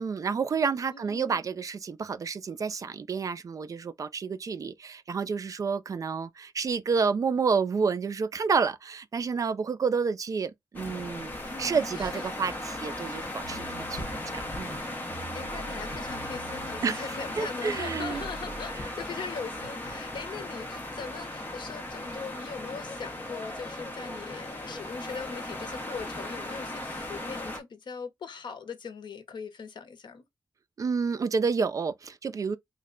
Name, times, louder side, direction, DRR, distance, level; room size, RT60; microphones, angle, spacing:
voice 1, 0.0-11.3 11.6-14.8 16.8-17.0 17.4-18.2 30.8-32.6, right 5 dB, 45° right, 0.3 m, -29 dB
voice 2, 0.9-1.4 11.5-12.4 15.3-30.3, left 5 dB, 80° left, 0.7 m, -40 dB
sound 1, 10.7-27.6, left 1 dB, 20° left, 0.8 m, -37 dB
sound 2, 13.4-18.8, right 3 dB, 75° right, 0.7 m, -46 dB
3.2 x 2.1 x 3.6 m
wide cardioid pair, 170°, 8 cm